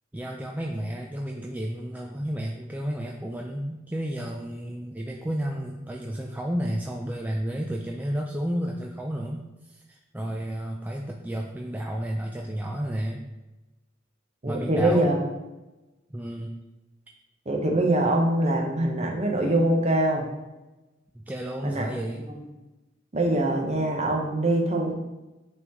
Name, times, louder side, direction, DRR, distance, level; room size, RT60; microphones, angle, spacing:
voice 1, 0.1-13.3 14.4-15.0 16.1-16.5 21.3-22.2, equal, 10° right, 0 dB, 0.4 m, -32 dB
voice 2, 14.4-15.2 17.5-20.3 21.6-21.9 22.3-22.4 23.1-24.9, right 1 dB, 35° right, 1 dB, 1.0 m, -23 dB
9.1 x 3.7 x 3.0 m, 1.1 s
head